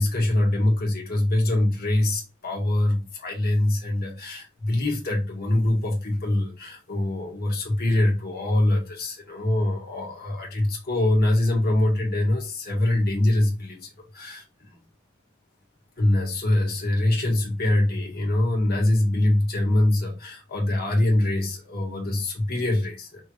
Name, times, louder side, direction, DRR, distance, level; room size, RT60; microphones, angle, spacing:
voice 1, 0.0-13.9 14.1-14.8 16.0-23.2, left 1 dB, 50° left, -1 dB, 1.7 m, -24 dB
5.5 x 2.6 x 3.1 m, 0.28 s
head